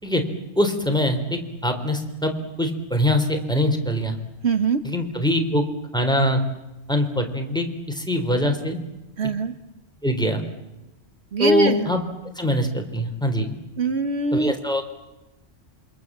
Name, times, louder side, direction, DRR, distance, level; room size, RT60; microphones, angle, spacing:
voice 1, 0.5-2.3 2.6-4.2 4.8-5.6 5.9-6.4 6.9-8.8 10.0-10.4 11.4-12.0 12.3-13.5 14.3-14.8, left 1 dB, 5° left, 5 dB, 3.4 m, -23 dB
voice 2, 4.4-4.8 9.2-9.5 11.3-11.9 13.8-14.5, right 4 dB, 65° right, 9 dB, 1.4 m, -23 dB
27.5 x 24.5 x 7.4 m, 1.0 s
omnidirectional pair, 1.2 m